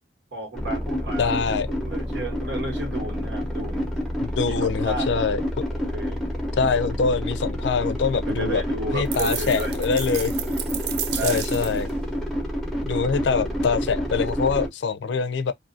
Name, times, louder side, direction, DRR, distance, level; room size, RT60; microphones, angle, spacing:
voice 1, 0.3-1.4 1.7-3.9 4.5-5.3 5.7-6.2 8.3-9.7 11.1-11.4 13.3-13.6, right 2 dB, 90° right, 1.4 m, -33 dB
sound 1, 0.5-14.7, equal, ahead, 0.6 m, -28 dB
voice 2, 1.2-1.7 4.2-5.6 6.6-8.6 8.9-10.3 11.2-11.9 12.9-15.5, left 5 dB, 80° left, 0.4 m, -24 dB
sound 2, 9.1-11.9, right 11 dB, 65° right, 0.4 m, -32 dB
2.6 x 2.4 x 2.5 m
head